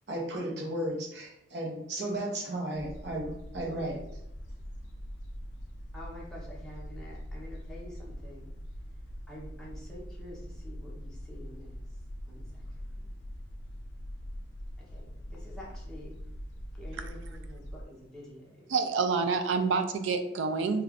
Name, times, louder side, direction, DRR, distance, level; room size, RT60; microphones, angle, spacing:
voice 1, 0.1-4.0, right 1 dB, 65° right, -2 dB, 0.7 m, -34 dB
sound 1, 2.7-17.8, equal, 80° left, 0.4 m, -43 dB
voice 2, 5.9-8.5 9.3-11.8 12.3-12.6 12.9-13.1 14.8-16.1 16.7-18.7, left 1 dB, 5° left, -6 dB, 0.7 m, -48 dB
voice 3, 18.7-20.8, right 4 dB, 85° right, 8 dB, 0.3 m, -28 dB
2.4 x 2.3 x 3.4 m, 0.83 s
head